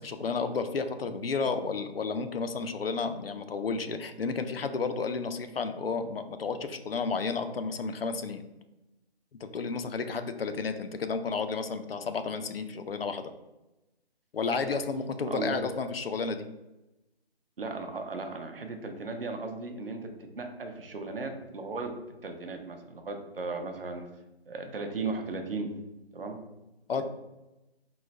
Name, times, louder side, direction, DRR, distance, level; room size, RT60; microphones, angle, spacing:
voice 1, 0.0-8.4 9.4-13.3 14.3-16.5 26.9-27.0, left 4 dB, 65° left, 9 dB, 0.4 m, -32 dB
voice 2, 15.2-15.6 17.6-21.9 22.2-24.1 24.5-25.7 26.1-26.4, right 3 dB, 60° right, 5 dB, 0.7 m, -36 dB
3.8 x 2.2 x 3.9 m, 0.98 s
figure-of-eight pair, 165°, 32 cm